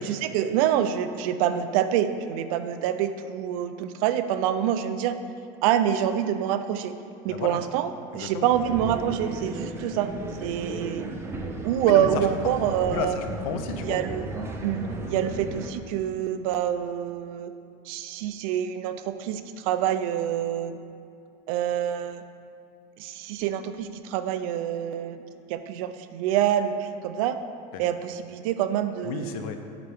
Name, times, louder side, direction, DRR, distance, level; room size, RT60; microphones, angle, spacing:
voice 1, 0.0-5.2 5.6-7.0 7.2-10.1 10.4-11.1 11.6-13.2 13.8-14.3 14.6-17.5 17.9-20.8 21.5-22.2 23.0-25.2 25.5-27.4 27.8-29.4, right 10 dB, 85° right, 10 dB, 0.5 m, -26 dB
voice 2, 7.3-7.6 8.1-8.5 11.8-12.3 12.8-14.0 27.7-27.8 29.0-29.6, left 7 dB, 90° left, 7 dB, 0.6 m, -33 dB
sound 1, 8.5-15.7, right 2 dB, 15° right, 0.6 m, -35 dB
9.8 x 4.5 x 3.5 m, 2.6 s
cardioid pair, 150°, 18 cm